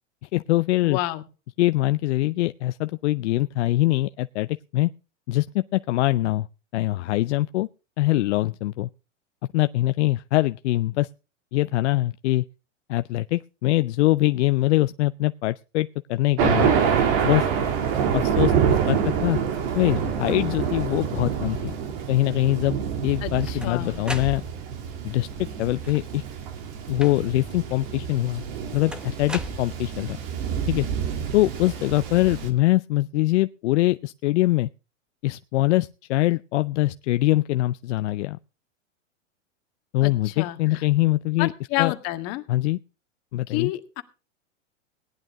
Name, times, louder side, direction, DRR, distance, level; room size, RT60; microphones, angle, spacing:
voice 1, 0.3-1.0 1.6-4.9 5.3-6.5 6.7-7.7 8.0-8.9 9.5-11.1 11.5-12.5 12.9-16.7 17.2-17.5 18.1-19.4 19.7-21.8 22.1-22.8 23.0-24.4 25.0-26.2 26.9-28.4 28.7-30.2 30.7-30.9 31.3-34.7 35.2-38.4 39.9-41.5 41.8-41.9 42.5-42.8 43.3-43.7, left 17 dB, 65° left, 0.6 m, -23 dB
voice 2, 0.8-1.2 23.2-24.0 40.0-40.6 41.4-42.4 43.5-44.0, left 17 dB, 40° left, 1.8 m, -29 dB
Thunder, 16.4-32.5, right 7 dB, 45° right, 3.0 m, -27 dB
sound 1, 23.1-24.9 25.7-26.3 27.0-27.5 28.9-30.2, equal, ahead, 1.0 m, -37 dB
18.0 x 11.0 x 3.6 m
hypercardioid pair, 135°, 38 cm